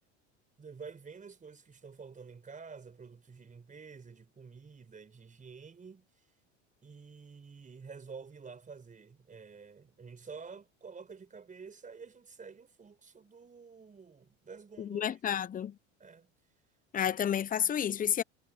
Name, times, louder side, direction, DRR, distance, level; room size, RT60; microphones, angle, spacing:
voice 1, 0.6-6.3 6.8-15.5 16.0-16.3 17.0-17.1, right 5 dB, 20° right, 5.2 m, -50 dB
voice 2, 14.8-15.7 16.9-18.2, left 9 dB, 25° left, 0.7 m, -30 dB
supercardioid pair, 105°, 35 cm